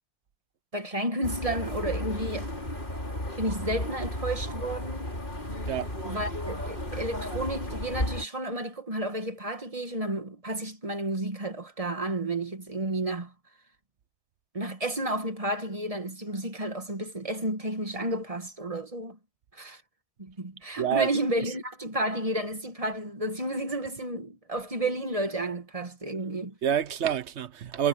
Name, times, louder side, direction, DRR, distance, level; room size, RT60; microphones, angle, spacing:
voice 1, 0.7-2.5 3.4-5.1 6.0-13.3 14.5-19.2 19.5-19.8 20.2-26.5, right 1 dB, 30° right, 1.8 m, -32 dB
sound 1, 1.2-8.3, left 1 dB, 50° left, 6.2 m, -34 dB
voice 2, 20.8-21.1 21.4-21.5 26.6-27.9, right 9 dB, 85° right, 1.2 m, -27 dB
omnidirectional pair, 1.1 m